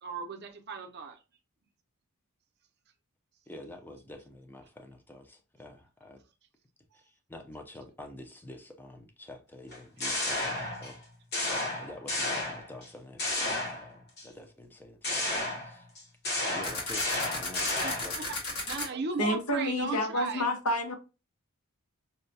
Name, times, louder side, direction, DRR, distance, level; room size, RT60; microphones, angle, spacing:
voice 1, 0.0-1.2 6.9-7.0 17.6-18.4 18.6-20.5, right 4 dB, 50° right, 0.6 m, -37 dB
voice 2, 3.5-6.2 6.9-11.0 11.4-15.3 15.5-15.9 16.5-17.7 18.0-18.3, left 1 dB, 10° left, 0.5 m, -48 dB
sound 1, 9.7-11.0 11.3-12.9 13.2-14.2 15.0-18.2, left 2 dB, 45° left, 1.0 m, -32 dB
sound 2, 16.6-18.9, left 2 dB, 70° left, 1.7 m, -34 dB
voice 3, 19.2-21.0, left 1 dB, 90° left, 0.9 m, -29 dB
5.4 x 2.2 x 2.6 m
head